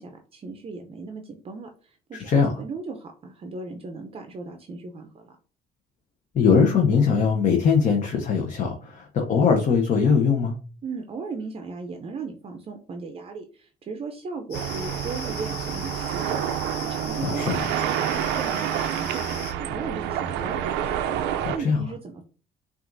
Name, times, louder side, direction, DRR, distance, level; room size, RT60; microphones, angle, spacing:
voice 1, 0.0-5.4 10.8-19.3 19.6-21.0 21.5-22.2, right 4 dB, 35° right, 5 dB, 0.5 m, -37 dB
voice 2, 2.1-2.6 6.3-10.6 17.2-17.7 21.4-21.8, left 5 dB, 45° left, 2 dB, 0.8 m, -21 dB
sound 1, 14.5-19.5, left 5 dB, 70° left, 1.2 m, -39 dB
sound 2, 14.5-21.6, right 10 dB, 85° right, 0.4 m, -28 dB
5.7 x 2.5 x 2.6 m, 0.38 s
cardioid pair, 110°, 17 cm